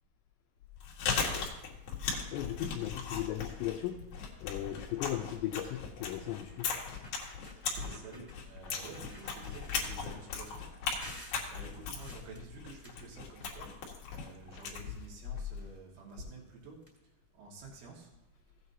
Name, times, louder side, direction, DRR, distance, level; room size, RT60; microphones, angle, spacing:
Chewing mastication, 0.6-15.7, left 5 dB, 65° left, 2.2 m, -38 dB
voice 1, 2.3-4.0 4.4-6.7, left 12 dB, 90° left, 3 dB, 2.4 m, -37 dB
Vinyl static, 3.0-3.3 3.8-3.9 4.2-4.5 5.7-5.8 6.4-6.5 6.8-8.4 8.7-10.4 11.0-13.8 14.1-15.2 16.1-16.2 16.5-16.6 16.8-16.9, equal, 15° right, 1.5 m, -54 dB
voice 2, 7.6-11.1 11.4-13.7 14.1-16.8 17.3-18.1, right 2 dB, 75° right, -2 dB, 4.3 m, -49 dB
16.0 x 8.4 x 2.8 m, 0.86 s
omnidirectional pair, 5.7 m